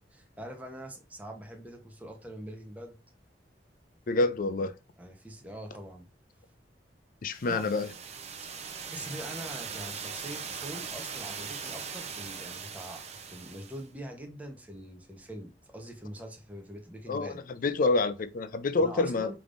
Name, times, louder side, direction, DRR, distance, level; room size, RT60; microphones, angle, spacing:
voice 1, 0.1-3.0 5.0-6.1 7.5-7.7 8.9-17.4 18.8-19.3, right 1 dB, 10° right, 0.9 m, -43 dB
voice 2, 4.1-4.7 7.2-7.9 17.1-17.3 17.6-19.3, left 3 dB, 50° left, 0.4 m, -27 dB
sound 1, 7.3-13.9, right 6 dB, 40° right, 0.6 m, -40 dB
5.0 x 3.5 x 2.5 m
head